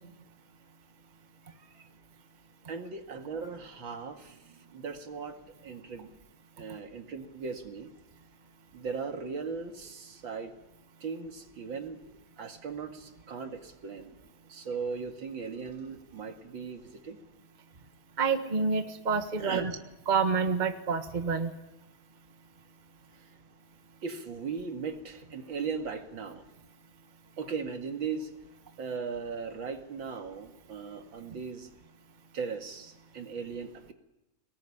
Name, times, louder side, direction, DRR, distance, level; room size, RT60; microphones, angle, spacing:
voice 1, 2.7-6.1 6.6-7.9 8.7-10.5 11.0-12.0 12.4-14.1 14.5-17.2 19.4-19.7 24.0-26.4 27.4-28.3 28.8-31.7 32.3-33.9, right 5 dB, 70° right, 5 dB, 2.7 m, -38 dB
voice 2, 18.2-19.7 20.1-21.5, right 5 dB, 25° right, 7 dB, 1.4 m, -28 dB
23.5 x 19.5 x 9.9 m, 0.93 s
omnidirectional pair, 2.2 m